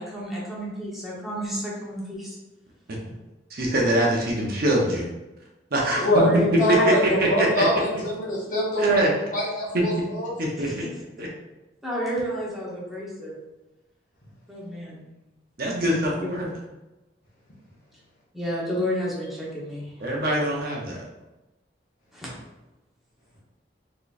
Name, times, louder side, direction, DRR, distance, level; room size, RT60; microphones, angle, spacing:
voice 1, 0.0-2.4 6.1-6.4 6.7-7.0 10.6-10.9 11.8-13.3 14.5-15.0 18.3-19.9 22.1-22.3, equal, ahead, -7 dB, 1.0 m, -31 dB
voice 2, 3.5-5.1 5.7-6.2 6.7-7.6 8.8-9.1 10.4-10.9 11.2-11.3 15.6-16.5 20.0-21.0, right 1 dB, 55° right, -2 dB, 0.7 m, -23 dB
voice 3, 6.0-6.3 6.6-9.0 9.3-10.3, equal, 45° left, -5 dB, 1.1 m, -24 dB
3.8 x 3.1 x 2.5 m, 1.0 s
head